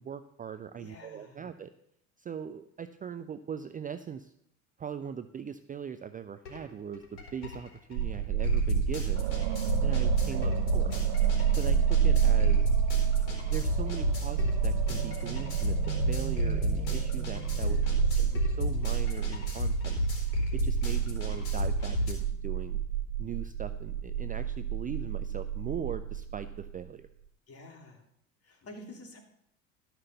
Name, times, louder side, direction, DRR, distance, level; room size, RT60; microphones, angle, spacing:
voice 1, 0.0-1.7 2.2-4.3 4.8-9.3 9.8-10.9 11.6-12.8 13.5-17.8 18.1-19.9 20.5-22.8 23.2-27.1, right 7 dB, 20° right, 11 dB, 0.4 m, -40 dB
voice 2, 0.8-1.4 10.2-10.6 17.5-18.3 27.5-28.0 28.4-29.2, left 1 dB, 35° left, 3 dB, 2.9 m, -50 dB
sound 1, 6.4-6.6 6.9-22.1, left 1 dB, 75° left, 3.8 m, -32 dB
sound 2, 7.9-26.8, right 9 dB, 65° right, 1.2 m, -30 dB
sound 3, 9.1-19.3, right 10 dB, 80° right, 0.8 m, -41 dB
12.5 x 6.0 x 6.7 m, 0.73 s
hypercardioid pair, 85°, 40 cm